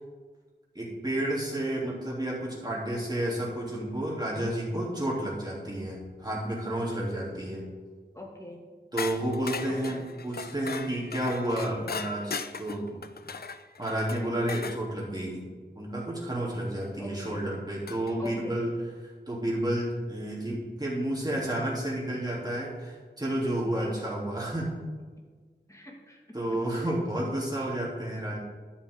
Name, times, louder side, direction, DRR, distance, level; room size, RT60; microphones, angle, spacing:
voice 1, 0.7-7.6 8.9-13.0 13.8-15.4 15.8-18.7 19.3-24.7 26.3-28.4, right 1 dB, 20° right, -5 dB, 3.0 m, -31 dB
voice 2, 8.1-8.6 9.9-10.1 17.0-17.5 18.2-18.6 23.6-24.0 25.7-26.4, left 1 dB, 15° left, 0 dB, 2.0 m, -43 dB
sound 1, 9.0-14.8 16.8-16.9 17.9-18.3, left 5 dB, 60° left, 0.5 m, -38 dB
11.5 x 7.1 x 3.7 m, 1.5 s
wide cardioid pair, 55°, 18 cm